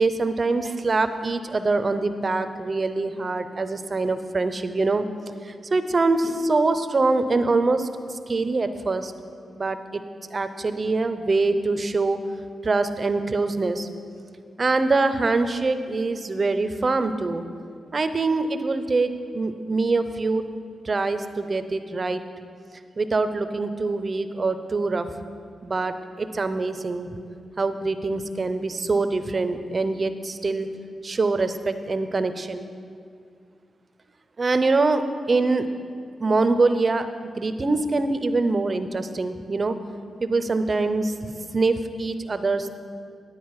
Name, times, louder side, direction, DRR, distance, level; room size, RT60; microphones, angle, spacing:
voice 1, 0.0-5.1 5.4-9.1 9.6-10.0 10.3-12.2 12.6-13.9 14.6-17.4 17.9-20.4 20.8-22.2 23.0-25.1 25.6-27.2 27.6-30.7 31.0-32.7 34.4-35.0 35.3-35.7 36.2-39.8 40.2-42.8, right 3 dB, 40° right, 10 dB, 0.6 m, -24 dB
10.0 x 8.9 x 4.8 m, 2.2 s
cardioid pair, 65°, 0 cm